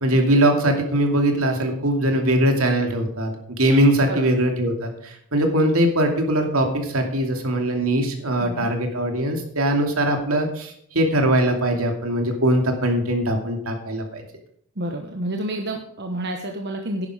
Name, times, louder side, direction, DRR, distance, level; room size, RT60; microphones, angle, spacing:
voice 1, 0.0-3.3 3.6-14.2, right 1 dB, 70° right, 3 dB, 2.6 m, -21 dB
voice 2, 14.8-17.1, right 1 dB, 50° right, 3 dB, 1.1 m, -29 dB
11.0 x 9.8 x 5.0 m, 0.68 s
head